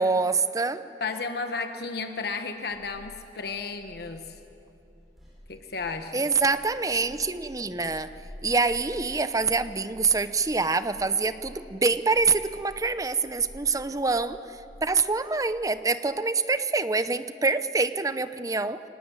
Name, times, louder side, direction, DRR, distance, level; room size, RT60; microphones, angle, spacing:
voice 1, 0.0-0.9 6.1-8.1 8.4-18.8, right 4 dB, 20° right, 12 dB, 0.7 m, -25 dB
voice 2, 1.0-4.4 5.5-6.3, left 4 dB, 60° left, 6 dB, 1.2 m, -33 dB
sound 1, 2.1-15.6, equal, ahead, 7.2 m, -49 dB
24.0 x 18.0 x 9.6 m, 2.8 s
head